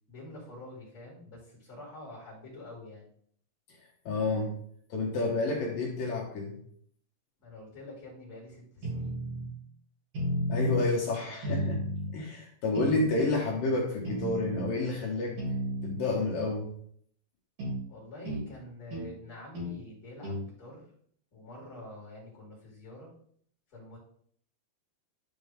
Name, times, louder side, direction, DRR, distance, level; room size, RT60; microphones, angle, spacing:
voice 1, 0.1-3.1 7.4-9.2 17.9-20.9 21.3-23.1 23.7-24.0, left 2 dB, 25° left, -7 dB, 4.5 m, -47 dB
voice 2, 4.1-4.5 4.9-6.6 10.5-11.8 12.1-15.4 15.8-16.7, left 2 dB, 65° left, -2 dB, 2.3 m, -29 dB
sound 1, 8.8-9.5 10.1-10.9 11.4-12.1 12.7-13.4 14.0-14.7 15.4-16.0 17.6-17.8 18.2-18.5 18.9-19.1 19.5-19.8 20.2-20.4, equal, 35° right, 3.1 m, -33 dB
13.0 x 5.1 x 3.7 m, 0.62 s
omnidirectional pair, 5.9 m